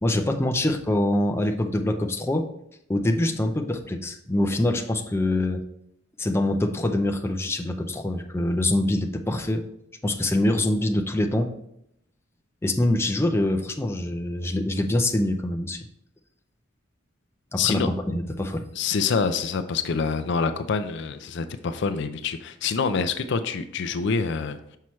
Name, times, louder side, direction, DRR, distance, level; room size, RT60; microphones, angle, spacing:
voice 1, 0.0-2.5 2.9-5.6 6.2-9.6 10.0-11.5 12.6-15.9 17.5-18.6, left 1 dB, 15° left, 4 dB, 0.5 m, -24 dB
voice 2, 17.6-17.9 18.8-24.6, left 5 dB, 60° left, 9 dB, 0.4 m, -26 dB
6.1 x 5.6 x 3.1 m, 0.74 s
head